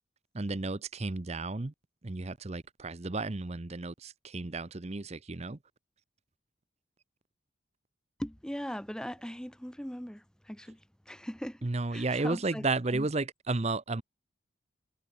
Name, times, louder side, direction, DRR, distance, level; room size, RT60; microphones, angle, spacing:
voice 1, 0.3-1.7 2.0-5.6 11.6-14.0, right 3 dB, 30° right, 0.7 m, -33 dB
voice 2, 8.2-10.8 11.1-12.6 12.9-13.1, equal, 5° left, 0.7 m, -40 dB
head